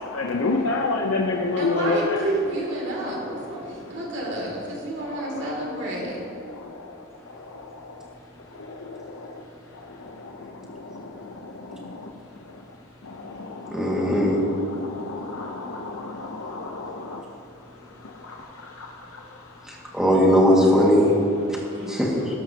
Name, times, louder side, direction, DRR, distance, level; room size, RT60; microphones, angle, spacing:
voice 1, 0.0-2.2 5.0-5.2 6.5-6.9 7.4-8.1 8.6-9.4 9.8-12.1 13.0-17.2 18.0-19.2, left 3 dB, 90° left, 0 dB, 0.9 m, -30 dB
voice 2, 1.6-6.2 21.7-21.9, right 1 dB, 60° right, -3 dB, 2.9 m, -29 dB
voice 3, 13.7-14.4 19.9-21.1 21.9-22.3, equal, 5° right, -4 dB, 2.1 m, -18 dB
20.0 x 11.5 x 3.0 m, 2.8 s
head